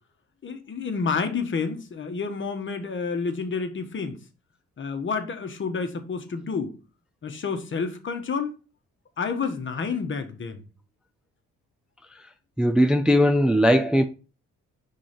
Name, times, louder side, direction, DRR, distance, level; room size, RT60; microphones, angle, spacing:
voice 1, 0.4-4.2 4.8-6.8 7.2-8.5 9.2-10.6, left 5 dB, 40° left, 1.2 m, -29 dB
voice 2, 12.6-14.0, equal, 5° right, 0.5 m, -19 dB
4.9 x 3.8 x 5.8 m
cardioid pair, 90°, 30 cm